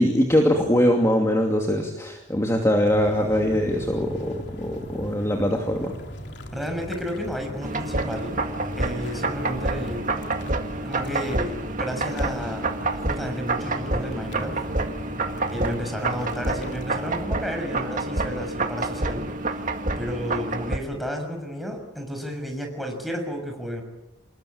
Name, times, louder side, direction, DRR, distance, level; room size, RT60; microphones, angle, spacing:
voice 1, 0.0-5.9, equal, 15° left, 2 dB, 2.6 m, -22 dB
sound 1, 2.8-17.3, equal, 65° left, 3.2 m, -39 dB
voice 2, 6.5-8.4 8.7-10.0 10.8-14.6 15.5-19.6 20.0-23.8, equal, ahead, 3 dB, 6.5 m, -32 dB
sound 2, 7.6-20.8, right 2 dB, 45° right, 2.1 m, -28 dB
27.5 x 21.0 x 8.7 m, 0.98 s
head